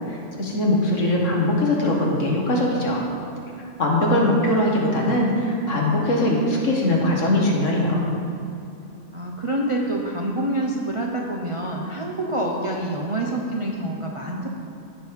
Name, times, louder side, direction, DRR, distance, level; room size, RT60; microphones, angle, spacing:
voice 1, 0.0-3.0 3.8-8.1, left 1 dB, 55° left, -2 dB, 1.8 m, -21 dB
voice 2, 9.1-14.5, right 1 dB, 30° right, -1 dB, 0.6 m, -26 dB
15.5 x 5.5 x 4.7 m, 2.5 s
omnidirectional pair, 1.6 m